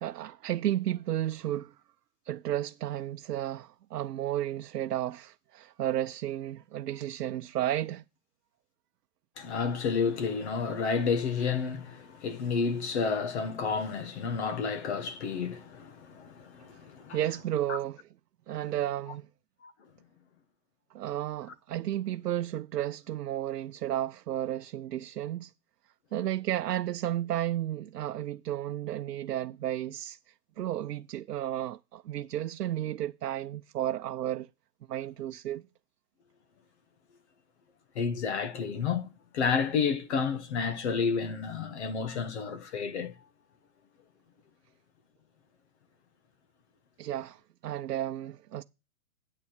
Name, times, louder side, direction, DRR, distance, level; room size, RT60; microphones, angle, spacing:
voice 1, 0.0-1.7 2.2-8.0 17.1-18.0 18.5-19.3 20.9-25.5 26.1-30.2 30.6-34.5 34.9-35.6 47.0-48.6, right 12 dB, 80° right, 0.7 m, -33 dB
voice 2, 9.4-17.2 17.7-17.8 19.6-19.7 37.9-43.1, left 5 dB, 45° left, 1.4 m, -30 dB
8.4 x 8.4 x 6.5 m
hypercardioid pair, 165°, 47 cm